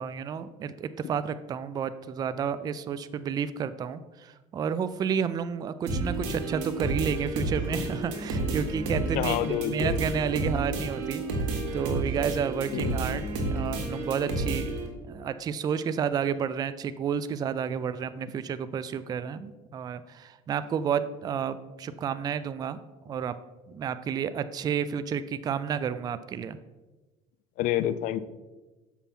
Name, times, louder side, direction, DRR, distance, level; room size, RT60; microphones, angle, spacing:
voice 1, 0.0-11.2 11.7-13.2 13.5-14.7 15.1-22.8 23.1-23.3 23.7-26.6, right 7 dB, 25° right, 13 dB, 0.3 m, -31 dB
sound 1, 5.9-14.9, right 2 dB, 90° right, 1.6 m, -31 dB
voice 2, 9.1-10.0 12.7-13.0 27.6-28.2, left 12 dB, 60° left, 15 dB, 0.4 m, -28 dB
7.0 x 5.5 x 4.2 m, 1.2 s
cardioid pair, 120°, 15 cm